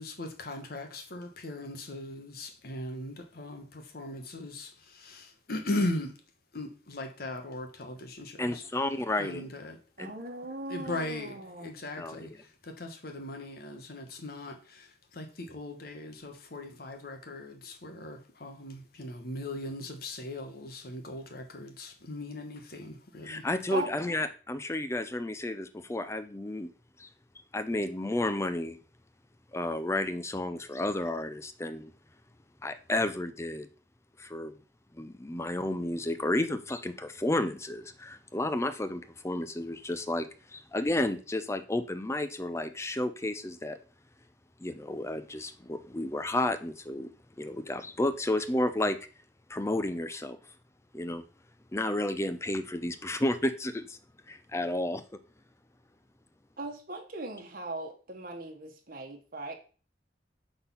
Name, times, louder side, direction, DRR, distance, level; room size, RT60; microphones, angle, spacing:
voice 1, 0.0-6.1 6.5-8.6 9.2-9.8 10.7-23.5, left 1 dB, 55° left, 6 dB, 1.2 m, -38 dB
voice 2, 8.4-9.5 10.0-10.1 12.0-12.3 23.2-26.7 27.0-27.1 27.5-28.8 29.5-31.9 32.6-33.7 34.2-34.5 34.9-43.8 44.6-47.1 47.4-49.0 49.5-50.4 50.9-51.2 51.7-54.0 54.3-55.0, left 1 dB, 15° left, 10 dB, 0.6 m, -32 dB
voice 3, 10.0-11.7 23.7-23.9 56.6-59.5, right 2 dB, 50° right, 3 dB, 1.3 m, -39 dB
6.1 x 4.0 x 5.6 m, 0.38 s
head